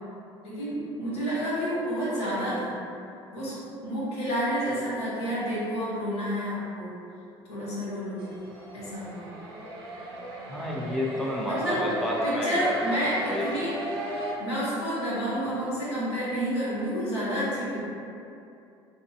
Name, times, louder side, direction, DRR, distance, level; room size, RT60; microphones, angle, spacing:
voice 1, 0.4-2.7 3.3-3.6 3.8-7.0 7.5-8.2 8.7-9.3 11.4-11.8 12.2-13.7 14.4-17.8, equal, 75° left, -8 dB, 0.9 m, -29 dB
sound 1, 8.2-14.3, right 1 dB, 70° right, 0.5 m, -36 dB
voice 2, 10.5-13.5, left 1 dB, ahead, -4 dB, 0.4 m, -30 dB
2.9 x 2.6 x 2.3 m, 2.6 s
figure-of-eight pair, 60°, 14 cm